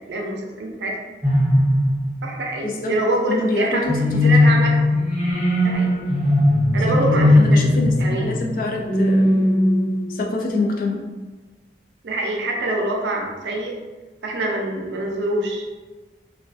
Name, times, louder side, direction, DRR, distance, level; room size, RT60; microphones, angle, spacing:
voice 1, 0.1-1.0 2.2-3.8 4.2-4.7 5.6-5.9 6.7-7.7 8.0-8.3 12.0-13.8 14.2-15.6, right 2 dB, 80° right, 0 dB, 0.5 m, -25 dB
sound 1, 1.2-2.3 3.9-10.4, left 1 dB, 5° right, 0.6 m, -18 dB
voice 2, 2.6-2.9 3.3-3.9 4.2-4.3 6.9-7.0 7.4-9.3 10.1-11.0, left 2 dB, 50° left, 2 dB, 0.3 m, -25 dB
2.4 x 2.3 x 2.3 m, 1.3 s
head